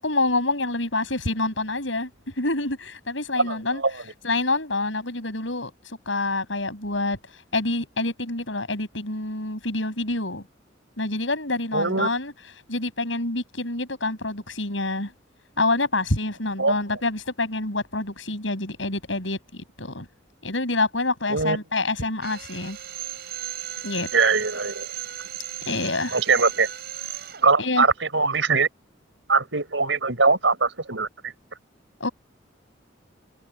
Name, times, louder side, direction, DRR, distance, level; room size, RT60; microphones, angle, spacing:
voice 1, 0.0-2.1 2.4-3.8 4.2-5.7 6.1-7.2 7.5-10.4 11.0-12.3 12.7-15.1 15.6-20.1 20.4-22.8 23.8-24.1 25.6-26.2 27.6-27.8 32.0-32.1, left 2 dB, 80° left, 7.6 m, -27 dB
voice 2, 3.4-3.9 11.7-12.1 16.6-16.7 21.3-21.6 24.1-24.9 26.1-26.7 27.4-28.7 29.3-31.3, right 4 dB, 75° right, 5.1 m, -22 dB
Drill, 22.2-27.5, right 13 dB, 55° right, 6.2 m, -36 dB
head